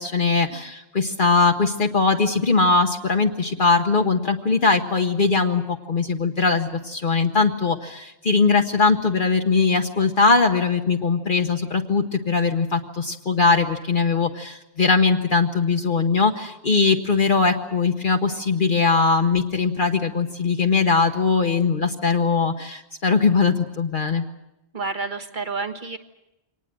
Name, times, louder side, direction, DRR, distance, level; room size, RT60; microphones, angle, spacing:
voice 1, 0.0-24.2, left 4 dB, 50° left, 4 dB, 1.2 m, -20 dB
voice 2, 24.7-26.0, right 4 dB, 45° right, 6 dB, 1.7 m, -29 dB
24.0 x 19.0 x 7.6 m, 0.90 s
omnidirectional pair, 1.1 m